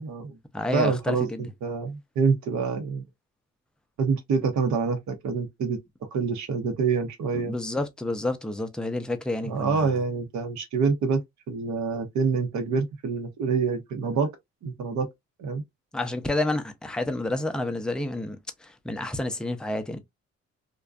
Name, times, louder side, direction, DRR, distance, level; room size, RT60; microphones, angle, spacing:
voice 1, 0.0-0.4 0.7-3.0 4.0-5.8 6.1-7.5 9.4-14.3 14.6-15.1 15.4-15.6, right 5 dB, 70° right, 0.8 m, -26 dB
voice 2, 0.5-1.5 7.3-10.0 15.9-20.0, left 2 dB, 5° left, 0.4 m, -29 dB
2.5 x 2.2 x 2.3 m
cardioid pair, 90°, 30 cm